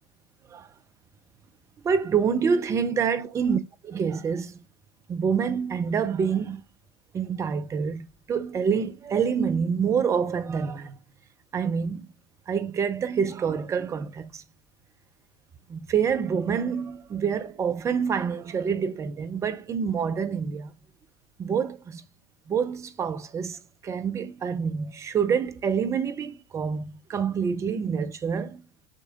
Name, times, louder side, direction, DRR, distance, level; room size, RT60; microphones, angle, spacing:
voice 1, 1.8-3.6 3.8-4.6 5.1-6.6 7.1-11.0 11.5-12.1 12.5-14.4 15.7-20.7 21.4-22.0 22.5-23.6 23.8-28.6, right 6 dB, 25° right, 0.9 m, -27 dB
6.9 x 5.2 x 3.8 m
figure-of-eight pair, 85°, 12 cm